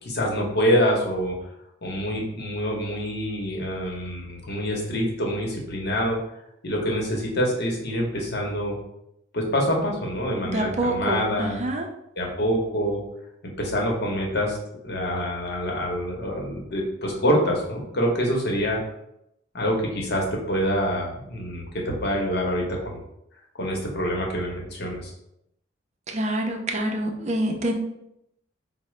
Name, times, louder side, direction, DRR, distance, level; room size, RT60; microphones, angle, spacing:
voice 1, 0.0-1.4 1.8-6.2 6.6-8.8 9.3-11.6 12.2-13.0 13.4-14.6 14.8-18.8 19.5-23.0 23.6-25.1, equal, 60° left, -1 dB, 0.9 m, -26 dB
voice 2, 10.4-11.9 26.1-27.7, right 1 dB, 35° right, 2 dB, 0.5 m, -26 dB
4.7 x 2.1 x 3.1 m, 0.81 s
head